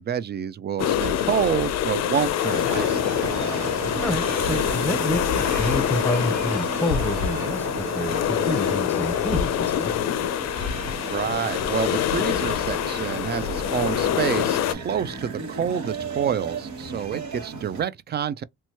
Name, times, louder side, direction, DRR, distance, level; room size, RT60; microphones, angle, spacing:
voice 1, 0.0-3.1 10.9-18.4, right 8 dB, 35° right, 0.4 m, -28 dB
sound 1, 0.8-14.7, left 10 dB, 60° left, 0.5 m, -25 dB
sound 2, 2.5-17.8, right 4 dB, 70° right, 1.1 m, -34 dB
voice 2, 4.0-9.9, left 1 dB, 5° left, 0.7 m, -28 dB
3.0 x 2.2 x 2.8 m
cardioid pair, 90°, 30 cm